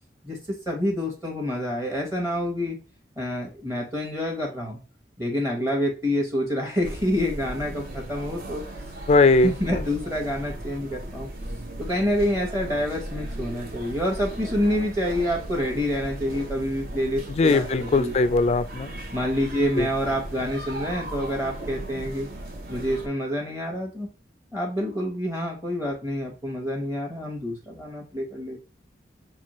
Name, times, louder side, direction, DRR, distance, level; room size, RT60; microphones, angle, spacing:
voice 1, 0.7-2.8 3.2-4.8 5.2-8.6 9.0-9.1 9.4-11.3 11.8-18.3 19.1-22.3 22.7-24.1 24.5-28.6, equal, 15° right, 1.0 m, -27 dB
sound 1, 6.8-23.1, right 1 dB, 55° right, 0.8 m, -37 dB
voice 2, 9.1-9.5 17.4-18.9 19.8-19.9, left 3 dB, 35° left, 0.3 m, -19 dB
6.0 x 2.3 x 3.0 m
head